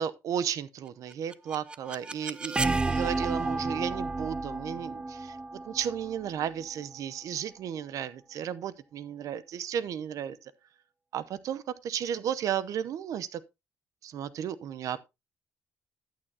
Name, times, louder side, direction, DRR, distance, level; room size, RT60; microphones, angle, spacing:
voice 1, 0.0-10.4 11.1-13.4 14.0-15.1, right 9 dB, 65° right, 0.7 m, -34 dB
sound 1, 1.1-7.0, right 3 dB, 15° right, 0.4 m, -32 dB
11.5 x 8.8 x 2.8 m
cardioid pair, 135°, 6 cm